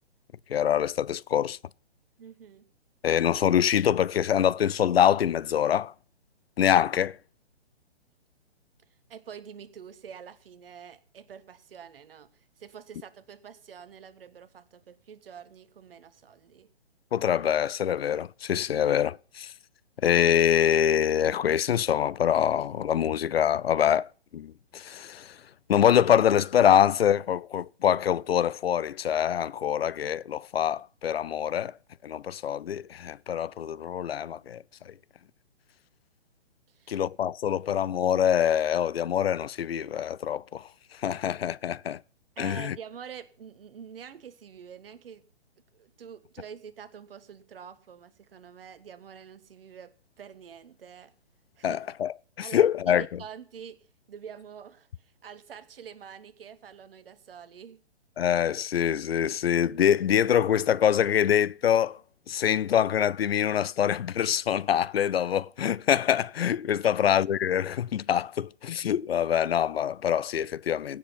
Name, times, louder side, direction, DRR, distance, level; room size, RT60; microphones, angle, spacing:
voice 1, 0.5-1.6 3.0-5.9 6.6-7.2 17.1-19.5 20.0-25.4 25.7-31.7 32.0-34.9 36.9-40.7 41.0-42.0 42.4-42.8 51.6-52.1 52.4-53.0 58.2-62.0 62.3-71.0, left 9 dB, 65° left, 0.6 m, -25 dB
voice 2, 2.2-2.6 9.1-16.7 36.7-37.0 42.3-45.2 45.7-51.1 51.6-51.8 52.4-57.8, right 7 dB, 60° right, 1.6 m, -46 dB
16.0 x 7.8 x 5.7 m
figure-of-eight pair, 135°, 33 cm